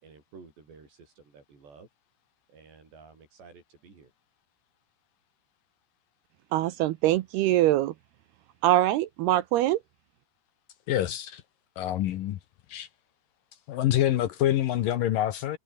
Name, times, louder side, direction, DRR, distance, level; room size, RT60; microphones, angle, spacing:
voice 1, 0.0-0.9 1.2-1.9 2.5-4.1, right 4 dB, 65° right, 9.1 m, -52 dB
voice 2, 6.5-7.9 8.6-9.8, right 14 dB, 80° right, 2.4 m, -23 dB
voice 3, 10.9-11.4 11.8-12.4 12.7-12.9 13.7-15.6, left 12 dB, 70° left, 2.1 m, -26 dB
omnidirectional pair, 5.4 m